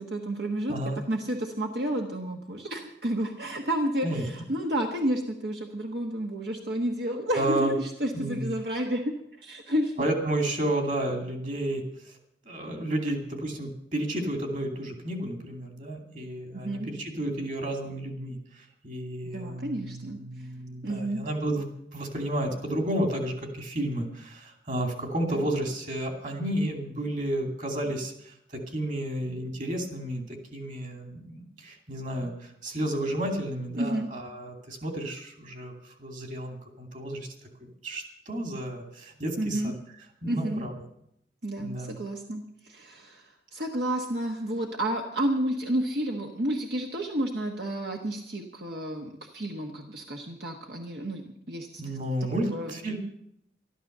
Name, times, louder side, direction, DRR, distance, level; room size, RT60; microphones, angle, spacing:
voice 1, 0.0-0.8 1.1-9.9 16.5-16.9 19.3-20.5 20.8-21.2 25.3-25.5 33.8-34.1 39.4-39.7 40.3-40.6 41.4-52.8, right 1 dB, 70° right, 2 dB, 1.3 m, -31 dB
voice 2, 7.3-7.7 8.1-8.5 10.0-12.2 12.5-21.7 21.9-37.3 37.6-39.7 40.2-40.7 41.6-42.0 51.8-53.0, right 1 dB, 45° right, 4 dB, 2.6 m, -32 dB
12.5 x 12.5 x 6.7 m, 0.76 s
head